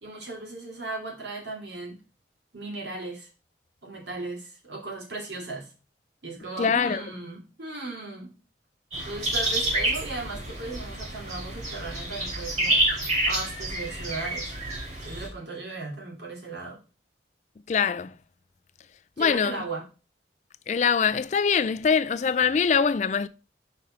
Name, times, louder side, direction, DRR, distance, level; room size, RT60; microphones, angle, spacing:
voice 1, 0.0-2.0 2.5-3.3 3.8-5.7 6.2-8.3 9.0-12.8 13.3-14.5 15.0-16.8 19.2-19.8, right 2 dB, 75° right, 2.8 m, -36 dB
voice 2, 6.6-7.0 17.7-18.1 19.2-19.6 20.7-23.3, left 6 dB, 40° left, 0.3 m, -23 dB
sound 1, 8.9-15.3, right 1 dB, 40° right, 3.0 m, -28 dB
5.3 x 4.2 x 6.1 m
head